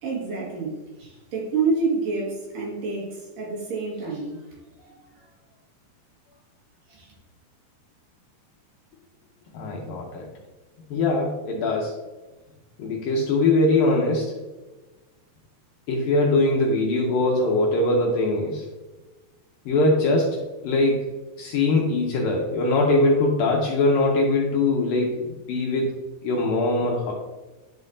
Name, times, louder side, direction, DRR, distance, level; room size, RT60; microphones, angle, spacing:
voice 1, 0.0-4.4 4.8-5.3 6.9-7.1, right 4 dB, 60° right, -4 dB, 3.2 m, -28 dB
voice 2, 9.5-10.3 10.9-11.9 12.8-14.3 15.9-18.7 19.7-20.4 20.6-21.1 21.4-25.9 26.2-27.1, left 2 dB, 75° left, -1 dB, 2.3 m, -22 dB
11.0 x 5.5 x 2.7 m, 1.2 s
omnidirectional pair, 4.9 m